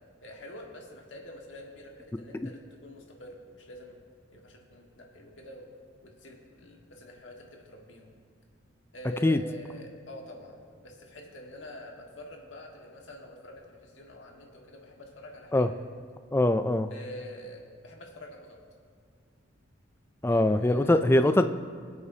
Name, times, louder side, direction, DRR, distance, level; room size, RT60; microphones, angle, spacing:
voice 1, 0.2-4.0 4.3-5.7 6.0-8.1 8.9-15.7 16.9-18.6 20.3-21.3, equal, 75° left, 0 dB, 1.7 m, -46 dB
voice 2, 16.3-16.9 20.2-21.5, left 1 dB, 10° left, 10 dB, 0.3 m, -22 dB
22.5 x 8.1 x 2.8 m, 2.1 s
head